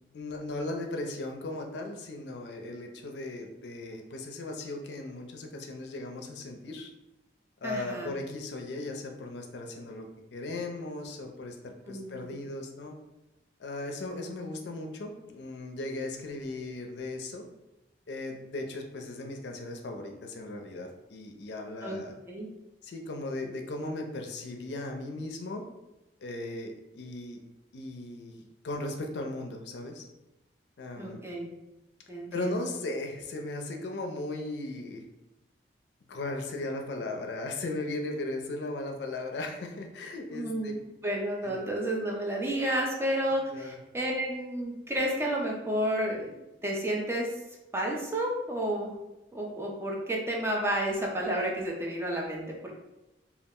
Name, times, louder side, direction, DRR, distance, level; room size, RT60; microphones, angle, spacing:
voice 1, 0.1-6.9 7.6-12.9 13.6-17.5 18.1-22.1 22.8-25.6 26.2-27.4 27.7-30.1 30.8-31.2 32.3-35.0 36.1-40.7 41.4-41.6 43.5-43.8, left 2 dB, 70° left, 3 dB, 0.4 m, -37 dB
voice 2, 7.6-8.1 11.9-12.3 21.8-22.0 22.3-22.5 31.0-31.5 32.1-32.6 40.3-46.3 46.6-47.3 47.7-48.9 49.3-52.4, right 1 dB, 15° right, -2 dB, 0.4 m, -31 dB
2.3 x 2.0 x 3.5 m, 0.99 s
head